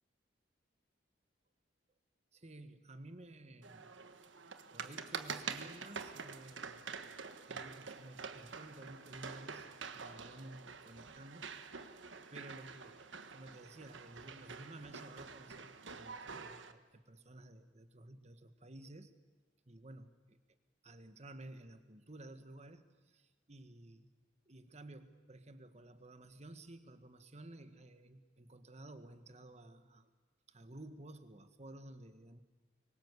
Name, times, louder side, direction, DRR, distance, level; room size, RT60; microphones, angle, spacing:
voice 1, 2.3-3.9 4.7-9.7 9.9-12.0 12.3-13.0 13.3-19.1 19.7-20.4 20.8-24.1 24.5-30.1 30.5-32.4, right 1 dB, 35° right, 10 dB, 1.6 m, -54 dB
sound 1, 3.6-16.7, right 5 dB, 85° right, 1.4 m, -47 dB
25.0 x 23.5 x 8.3 m, 1.3 s
head